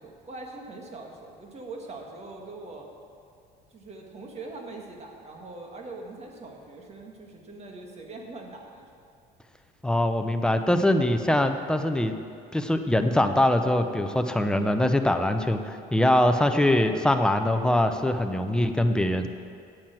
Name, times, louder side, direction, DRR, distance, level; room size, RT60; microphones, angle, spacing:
voice 1, 0.0-2.9 3.7-8.9, right 2 dB, 40° right, 1 dB, 1.8 m, -42 dB
voice 2, 9.8-12.1 12.5-19.3, left 1 dB, 5° left, 7 dB, 0.7 m, -23 dB
9.1 x 7.6 x 7.6 m, 2.4 s
cardioid pair, 110°, 17 cm